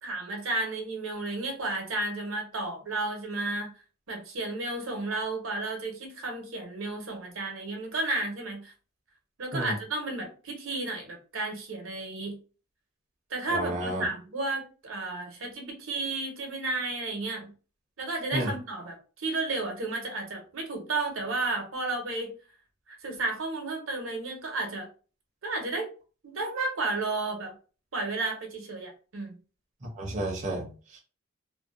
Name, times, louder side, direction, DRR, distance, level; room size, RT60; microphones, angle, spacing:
voice 1, 0.0-3.7 4.1-8.7 9.4-12.4 13.3-17.5 18.0-22.3 22.9-24.9 25.4-25.9 26.2-27.5 27.9-29.4, right 2 dB, 75° right, 2 dB, 0.8 m, -32 dB
voice 2, 13.5-14.0 18.3-18.5 29.9-31.0, right 1 dB, 40° right, -2 dB, 0.6 m, -31 dB
2.5 x 2.1 x 2.4 m, 0.36 s
head